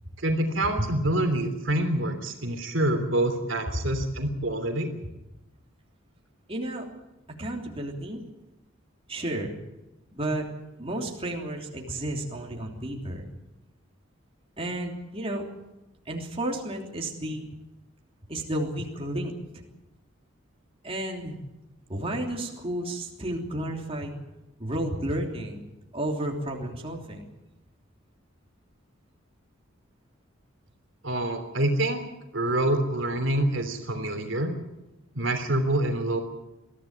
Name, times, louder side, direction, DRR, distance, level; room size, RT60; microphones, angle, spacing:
voice 1, 0.2-4.9 31.0-32.0 32.3-34.5 35.1-36.2, right 1 dB, 65° right, 6 dB, 3.2 m, -26 dB
voice 2, 6.5-6.9 7.4-8.2 9.1-9.5 10.1-10.5 10.8-13.3 14.6-15.5 16.0-17.5 18.3-19.6 20.8-21.4 21.9-24.1 24.6-25.6 25.9-27.3, right 1 dB, 30° right, 0 dB, 3.3 m, -32 dB
22.5 x 15.0 x 8.9 m, 0.99 s
head